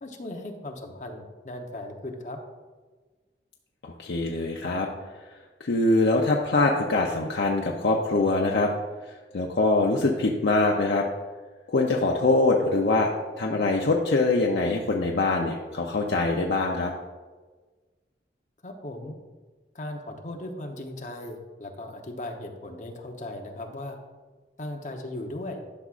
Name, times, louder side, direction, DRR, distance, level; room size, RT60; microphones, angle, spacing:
voice 1, 0.0-2.4 18.6-19.2 19.7-24.0 24.6-25.6, left 1 dB, 45° left, 3 dB, 0.9 m, -37 dB
voice 2, 3.8-4.9 5.6-8.7 9.0-11.1 11.7-13.1 13.4-16.9, left 2 dB, 70° left, 0 dB, 0.6 m, -23 dB
12.0 x 6.0 x 2.5 m, 1.3 s
head